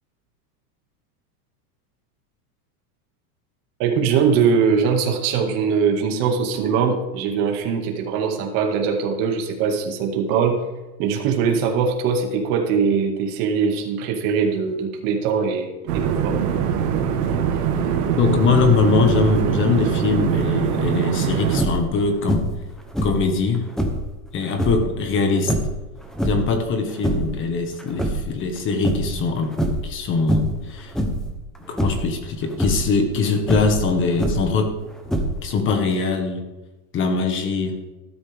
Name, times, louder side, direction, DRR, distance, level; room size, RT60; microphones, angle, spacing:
voice 1, 3.8-10.6 11.0-16.4, right 6 dB, 45° right, 3 dB, 2.2 m, -21 dB
sound 1, 15.9-21.6, right 7 dB, 80° right, 2.3 m, -22 dB
voice 2, 18.2-22.4 23.0-23.7 24.3-25.5 26.2-29.6 29.8-30.9 31.7-34.7 35.4-36.4 36.9-37.8, left 4 dB, 25° left, 6 dB, 1.6 m, -22 dB
sound 2, 21.5-21.9 22.3-22.7 22.9-24.1 24.5-24.9 25.4-26.6 26.9-27.4 27.8-28.6 28.8-29.2 29.5-29.9 30.3-30.6 30.9-31.3 31.8-32.1 32.5-32.9 33.4-34.6 35.1-35.6, right 1 dB, ahead, 1.0 m, -24 dB
14.0 x 12.5 x 3.6 m, 1.1 s
supercardioid pair, 160°, 46 cm